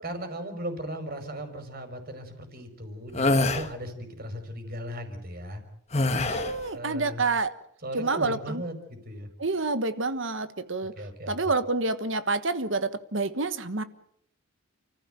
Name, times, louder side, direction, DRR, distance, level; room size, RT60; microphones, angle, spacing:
voice 1, 0.0-5.6 6.7-7.2 7.8-9.3 10.9-11.4, right 1 dB, 45° right, 5.1 m, -37 dB
sound 1, 3.1-3.7 5.9-6.6, left 2 dB, 30° left, 1.6 m, -24 dB
voice 2, 6.3-7.5 7.9-8.6 9.4-10.9 11.3-13.8, right 3 dB, 60° right, 1.4 m, -28 dB
30.0 x 15.0 x 9.1 m
head